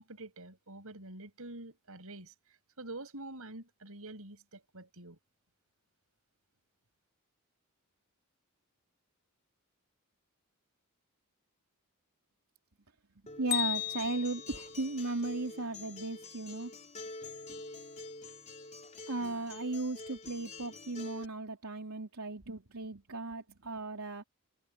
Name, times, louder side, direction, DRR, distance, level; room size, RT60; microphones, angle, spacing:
voice 1, 0.0-5.2, right 2 dB, 75° right, 7.1 m, -47 dB
Acoustic guitar, 13.3-21.2, left 3 dB, 35° left, 3.6 m, -47 dB
voice 2, 13.4-16.7 19.1-24.2, right 2 dB, 90° right, 3.2 m, -36 dB
Bell, 13.5-15.5, left 14 dB, 50° left, 2.9 m, -37 dB
head